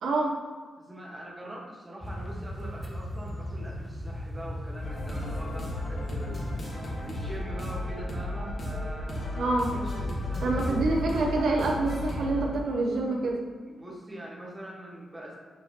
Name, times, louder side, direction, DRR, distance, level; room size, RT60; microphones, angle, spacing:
voice 1, 0.0-0.4 9.4-9.7 10.4-13.4, right 2 dB, 85° right, -1 dB, 0.7 m, -27 dB
voice 2, 0.8-6.5 7.0-10.9 13.7-15.4, right 1 dB, 15° right, -3 dB, 1.0 m, -43 dB
sound 1, 2.0-8.0 9.5-11.0, equal, 5° left, 0.6 m, -38 dB
sound 2, 4.8-12.5, left 1 dB, 50° left, 1.4 m, -34 dB
6.7 x 2.8 x 2.8 m, 1.5 s
cardioid pair, 95°, 0 cm